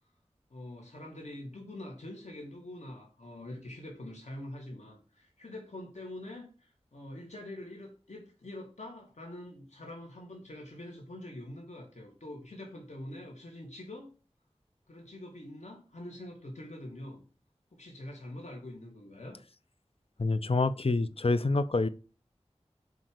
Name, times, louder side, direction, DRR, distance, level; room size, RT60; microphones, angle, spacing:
voice 1, 0.5-14.1 14.9-17.2 17.7-19.4, left 1 dB, 90° left, 3.2 m, -45 dB
voice 2, 20.2-21.9, left 3 dB, 55° left, 0.8 m, -27 dB
7.7 x 5.5 x 6.7 m
wide cardioid pair, 55°, 12 cm